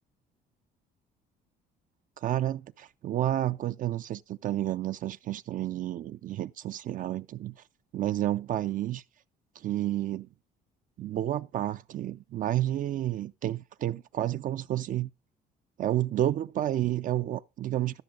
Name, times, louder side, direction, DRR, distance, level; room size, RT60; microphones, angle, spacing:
voice 1, 2.2-7.5 7.9-9.0 9.6-10.3 11.0-15.1 15.8-18.0, right 13 dB, 50° right, 0.4 m, -30 dB
13.5 x 6.2 x 3.8 m
cardioid pair, 110°, 17 cm